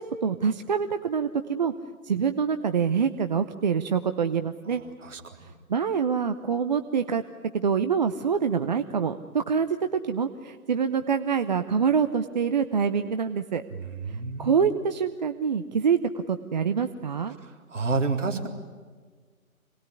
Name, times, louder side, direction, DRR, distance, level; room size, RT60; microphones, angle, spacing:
voice 1, 0.0-4.8 5.4-7.2 7.5-13.6 14.4-16.0 16.3-17.4, right 6 dB, 30° right, 9 dB, 0.8 m, -26 dB
voice 2, 5.0-5.5 13.7-14.6 17.7-18.5, right 4 dB, 60° right, 4 dB, 3.8 m, -29 dB
26.5 x 20.0 x 9.7 m, 1.5 s
figure-of-eight pair, 145°, 43 cm